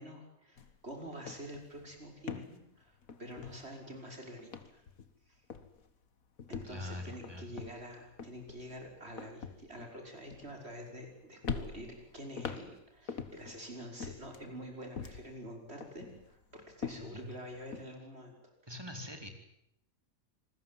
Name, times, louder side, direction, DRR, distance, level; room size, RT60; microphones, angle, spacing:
voice 1, 0.0-4.8 5.3-5.4 6.5-18.3, equal, 45° right, 2 dB, 6.2 m, -47 dB
sound 1, 0.6-0.8 1.1-4.1 4.4-5.2 5.5-5.9 6.4-11.1 11.4-13.6 14.0-15.4 15.8-17.8, left 6 dB, 75° left, 2.1 m, -44 dB
voice 2, 6.6-7.6 16.9-17.3 18.7-19.3, left 1 dB, 15° right, 4 dB, 4.3 m, -44 dB
27.0 x 21.0 x 9.4 m, 0.79 s
omnidirectional pair, 1.5 m